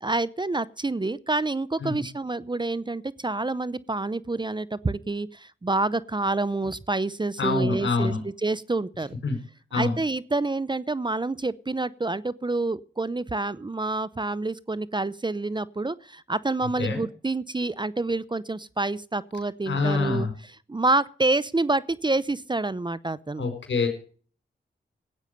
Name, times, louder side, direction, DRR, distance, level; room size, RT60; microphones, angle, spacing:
voice 1, 0.0-8.1 8.4-9.2 9.7-20.3 20.7-23.4, right 2 dB, 25° right, 19 dB, 0.7 m, -27 dB
voice 2, 7.4-8.2 9.2-9.4 9.7-10.0 16.6-17.0 19.7-20.3 23.4-23.9, left 3 dB, 85° left, 7 dB, 4.8 m, -26 dB
16.0 x 9.0 x 6.7 m, 0.42 s
cardioid pair, 45°, 19 cm